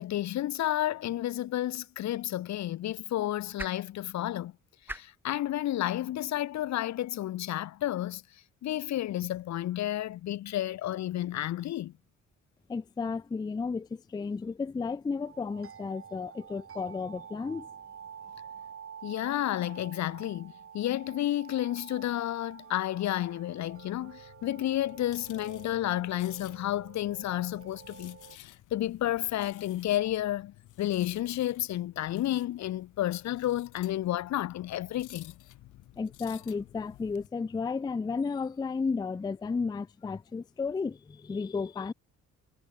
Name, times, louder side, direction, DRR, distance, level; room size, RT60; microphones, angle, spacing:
voice 1, 0.0-4.5 4.9-8.2 8.6-11.9 19.0-35.3, left 13 dB, 65° left, 0.7 m, -31 dB
sound 1, 1.8-8.0, right 1 dB, 5° right, 3.9 m, -49 dB
voice 2, 12.7-17.7 36.0-41.9, left 4 dB, 15° left, 0.4 m, -33 dB
sound 2, 15.2-28.4, right 8 dB, 45° right, 2.1 m, -49 dB
sound 3, 23.6-37.3, left 16 dB, 90° left, 2.1 m, -54 dB
cardioid pair, 90°, 30 cm